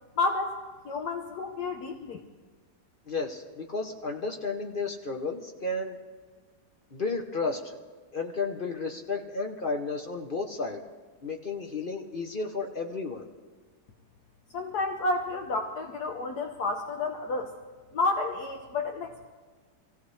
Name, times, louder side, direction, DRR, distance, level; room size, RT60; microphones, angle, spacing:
voice 1, 0.2-0.6 0.8-2.2 14.5-17.5 17.9-19.3, left 3 dB, 65° left, 3 dB, 1.4 m, -30 dB
voice 2, 3.1-6.0 6.9-7.8 8.1-10.8 11.2-13.3, left 3 dB, 45° left, 3 dB, 0.7 m, -32 dB
26.5 x 16.0 x 3.2 m, 1.4 s
omnidirectional pair, 1.9 m